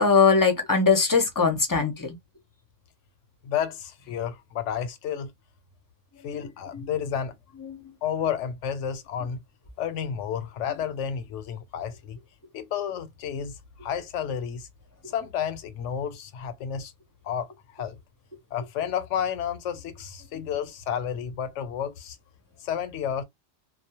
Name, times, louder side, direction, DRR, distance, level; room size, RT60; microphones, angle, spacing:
voice 1, 0.0-2.2 6.7-6.9 7.6-7.9, left 5 dB, 30° left, 0.4 m, -21 dB
voice 2, 3.4-5.3 6.2-7.3 8.0-9.4 9.8-12.2 12.5-14.7 15.0-16.9 17.2-18.0 18.5-22.2 22.6-23.2, left 8 dB, 90° left, 0.9 m, -31 dB
2.2 x 2.0 x 2.8 m
omnidirectional pair, 1.2 m